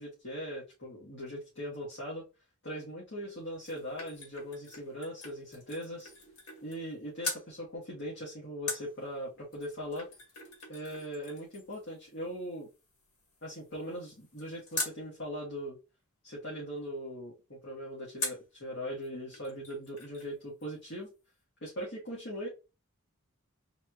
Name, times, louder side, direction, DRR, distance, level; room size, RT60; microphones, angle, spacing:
voice 1, 0.0-2.2 2.6-6.1 6.6-10.1 10.7-12.7 13.4-15.8 16.2-21.1 21.6-22.5, equal, 55° left, -5 dB, 2.0 m, -40 dB
sound 1, 3.3-6.9 7.2-7.5 8.7-15.0 18.2-18.5 19.0-19.1 19.3-20.3 20.6-20.7, left 3 dB, 85° left, 1.8 m, -42 dB
4.0 x 3.0 x 3.7 m, 0.28 s
head